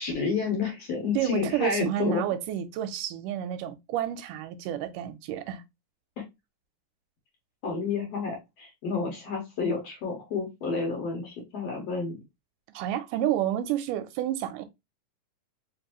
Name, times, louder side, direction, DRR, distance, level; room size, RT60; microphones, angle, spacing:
voice 1, 0.0-2.2 7.6-12.2, left 4 dB, 60° left, 1.9 m, -30 dB
voice 2, 1.2-5.6 12.7-14.6, right 11 dB, 80° right, 2.1 m, -30 dB
5.1 x 2.6 x 3.0 m
omnidirectional pair, 3.9 m